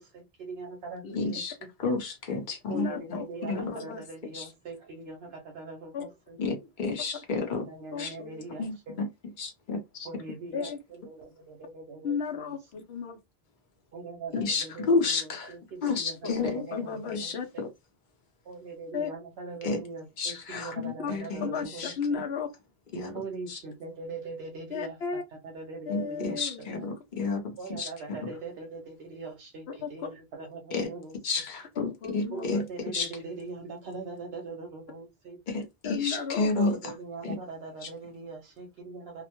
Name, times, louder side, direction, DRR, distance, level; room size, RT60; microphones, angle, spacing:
voice 1, 0.0-1.7 2.7-6.7 7.5-9.1 10.0-12.1 13.9-17.7 18.4-21.9 23.1-26.9 27.6-31.2 32.3-35.4 36.5-39.2, right 4 dB, 75° right, 0.8 m, -41 dB
voice 2, 1.1-2.9 3.5-3.6 4.3-4.5 6.4-7.6 8.0-8.1 8.6-9.1 9.4-10.1 14.3-15.5 15.8-16.6 17.1-17.3 19.6-19.8 20.2-21.5 21.8-21.9 22.9-23.2 23.5-23.6 25.9-28.3 30.7-30.9 31.2-32.6 32.9-33.1 35.5-36.9 37.2-37.4, left 3 dB, 50° left, 0.9 m, -31 dB
voice 3, 2.7-4.0 5.9-6.0 7.9-8.5 10.5-10.8 12.0-13.2 16.2-17.5 18.9-19.1 21.0-21.1 21.4-22.5 24.7-25.2 25.9-26.8 29.8-29.9 31.8-32.6 35.8-36.7, left 6 dB, 80° left, 1.0 m, -34 dB
2.5 x 2.1 x 2.9 m
omnidirectional pair, 1.1 m